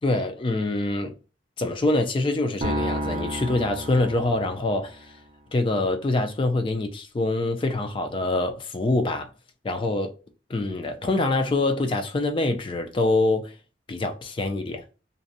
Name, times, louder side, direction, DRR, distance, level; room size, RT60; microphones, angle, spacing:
voice 1, 0.0-1.2 1.6-5.2 5.5-9.3 9.6-10.1 10.5-13.5 13.9-14.8, left 2 dB, 25° left, 0.3 m, -25 dB
sound 1, 2.6-5.0, right 1 dB, 40° right, 0.4 m, -31 dB
2.5 x 2.0 x 2.6 m
head